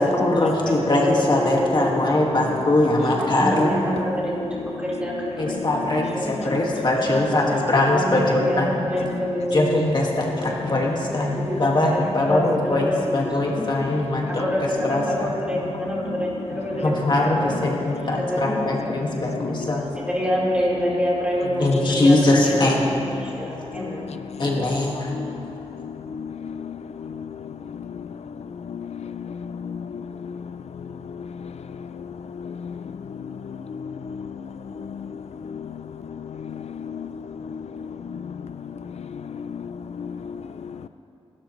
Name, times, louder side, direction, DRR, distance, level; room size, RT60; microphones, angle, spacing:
voice 1, 0.0-3.7 5.4-8.7 9.5-15.4 16.8-19.8 21.6-22.9 24.4-25.2, left 1 dB, 45° left, -2 dB, 1.9 m, -22 dB
voice 2, 0.9-2.1 3.2-6.4 7.0-7.1 7.9-9.7 10.4-10.5 11.0-11.6 11.9-13.0 13.5-13.6 14.3-17.5 17.8-18.9 20.0-22.6 23.2-24.1, equal, 10° right, -7 dB, 4.2 m, -27 dB
voice 3, 5.2-6.6 9.0-9.5 13.3-13.4 13.7-14.4 15.1-15.2 16.0-17.0 17.5-18.2 18.5-18.8 19.1-19.8 21.7-22.0 23.2-24.6 25.0-40.9, left 6 dB, 80° left, 11 dB, 0.4 m, -35 dB
27.0 x 12.5 x 3.2 m, 2.9 s
wide cardioid pair, 130°, 11 cm